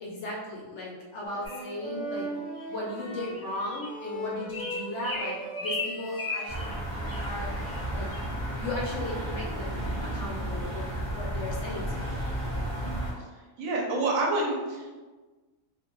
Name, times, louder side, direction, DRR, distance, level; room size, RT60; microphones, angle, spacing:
voice 1, 0.0-2.3 2.7-6.7 7.2-7.5 7.9-8.1 8.6-12.2, left 1 dB, 65° left, -3 dB, 0.8 m, -36 dB
sound 1, 1.2-6.6, right 1 dB, 90° left, 0.4 m, -39 dB
sound 2, 1.4-1.7 2.5-2.6 3.2-3.4 3.7-3.9 4.5-6.7 7.1-7.2 7.6-7.8 8.1-8.3, left 3 dB, 30° left, 0.4 m, -36 dB
sound 3, 6.5-13.1, right 1 dB, 45° right, 0.4 m, -33 dB
voice 2, 13.6-14.9, right 2 dB, 70° right, -2 dB, 0.9 m, -28 dB
2.5 x 2.2 x 2.9 m, 1.3 s
omnidirectional pair, 1.5 m